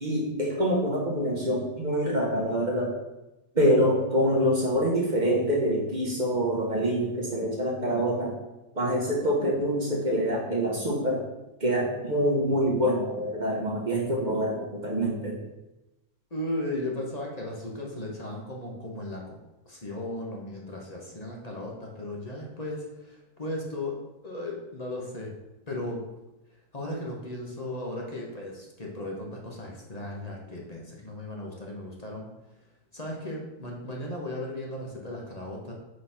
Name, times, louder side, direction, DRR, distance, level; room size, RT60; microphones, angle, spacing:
voice 1, 0.0-2.9 3.5-8.3 8.7-11.2 11.6-15.3, equal, 30° right, -2 dB, 1.2 m, -25 dB
voice 2, 16.3-19.4 19.7-24.0 24.2-25.3 25.7-26.0 26.7-32.3 32.9-35.7, left 1 dB, 30° left, -1 dB, 0.8 m, -36 dB
5.3 x 3.9 x 5.6 m, 1.0 s
omnidirectional pair, 1.8 m